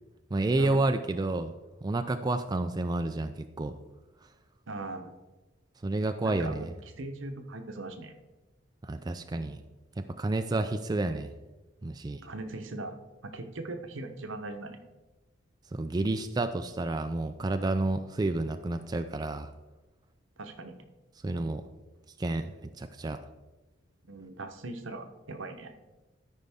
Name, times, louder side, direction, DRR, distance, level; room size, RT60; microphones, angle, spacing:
voice 1, 0.3-1.5 1.8-3.8 5.8-6.7 8.8-9.6 10.0-11.3 11.8-12.3 15.7-19.5 21.2-21.6 22.2-23.2, right 2 dB, 20° right, 7 dB, 0.3 m, -30 dB
voice 2, 4.7-5.2 6.2-6.7 7.0-8.1 12.2-12.9 13.2-14.8 20.4-20.8 24.1-25.7, right 2 dB, 80° right, 6 dB, 0.9 m, -40 dB
13.0 x 5.3 x 3.5 m, 1.1 s
head